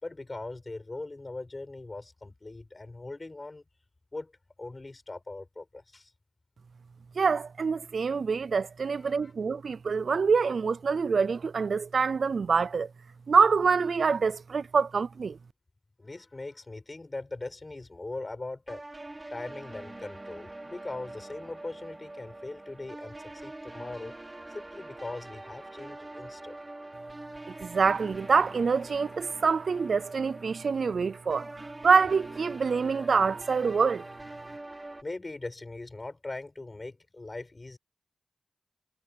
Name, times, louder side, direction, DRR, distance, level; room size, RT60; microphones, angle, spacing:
voice 1, 0.0-3.6 4.1-4.3 4.6-6.1 9.0-9.3 16.0-18.8 19.3-24.2 24.5-26.5 35.0-37.8, left 2 dB, 30° left, 7.3 m, -40 dB
voice 2, 7.2-12.9 13.3-15.4 27.5-34.1, right 5 dB, 70° right, 0.5 m, -26 dB
sound 1, 18.7-35.0, right 2 dB, 25° right, 4.3 m, -44 dB
wide cardioid pair, 75°, 0 cm